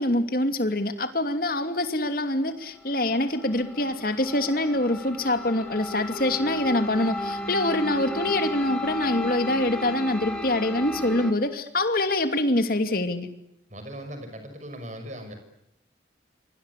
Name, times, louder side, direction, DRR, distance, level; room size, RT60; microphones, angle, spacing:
voice 1, 0.0-13.3, left 1 dB, 50° left, 8 dB, 2.8 m, -25 dB
sound 1, 2.8-11.3, left 2 dB, 5° left, 2.8 m, -35 dB
voice 2, 13.7-15.3, equal, 40° right, 7 dB, 6.0 m, -38 dB
28.5 x 24.5 x 8.4 m, 0.81 s
head